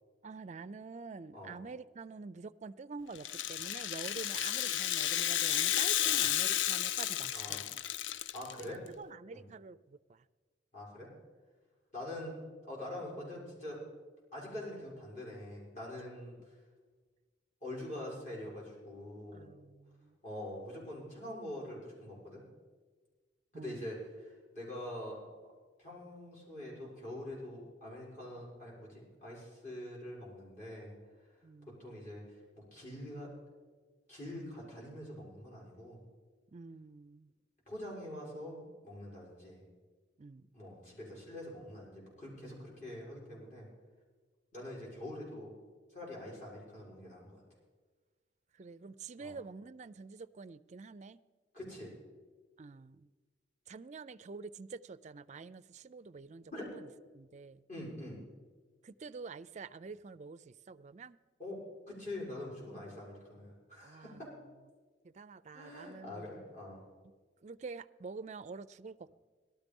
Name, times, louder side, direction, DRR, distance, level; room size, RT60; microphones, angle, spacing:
voice 1, 0.2-7.8 8.6-8.7 9.0-10.2 19.3-20.2 23.5-23.9 31.4-31.8 36.5-37.3 40.2-40.5 48.5-51.2 52.6-53.1 53.7-56.9 57.1-57.6 58.8-61.2 63.8-64.2 65.0-66.3 67.0-67.1 67.4-69.1, right 4 dB, 35° right, 15 dB, 0.4 m, -47 dB
Rattle (instrument), 3.1-8.6, left 12 dB, 75° left, 0.4 m, -32 dB
voice 2, 8.3-8.8 9.3-9.5 10.7-11.1 11.9-12.4 12.6-13.8 14.3-16.6 17.6-19.5 20.2-22.4 23.5-25.2 25.8-31.3 31.6-33.3 34.1-36.0 37.7-39.6 40.5-43.7 44.5-45.5 45.9-47.4 49.2-49.4 51.5-51.9 56.5-56.7 57.7-58.2 61.4-64.3 65.5-66.8, left 1 dB, 40° left, -4 dB, 6.3 m, -45 dB
17.5 x 13.0 x 5.3 m, 1.4 s
head